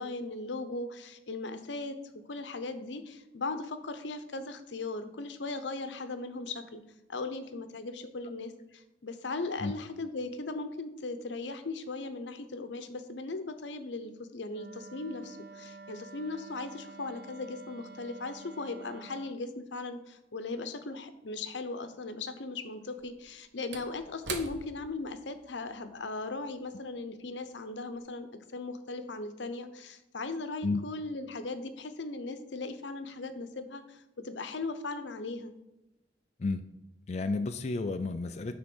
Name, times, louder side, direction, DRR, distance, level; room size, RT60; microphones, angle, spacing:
voice 1, 0.0-6.8 7.1-35.5, left 3 dB, 80° left, 10 dB, 0.8 m, -38 dB
Wind instrument woodwind instrument, 14.5-19.4, right 3 dB, 55° right, 0.6 m, -49 dB
Slam / Wood, 21.3-21.4 22.8-27.5 27.9-28.0, right 5 dB, 80° right, 1.0 m, -45 dB
voice 2, 37.1-38.6, left 3 dB, 35° left, 8 dB, 0.4 m, -31 dB
9.7 x 3.7 x 6.1 m, 0.94 s
head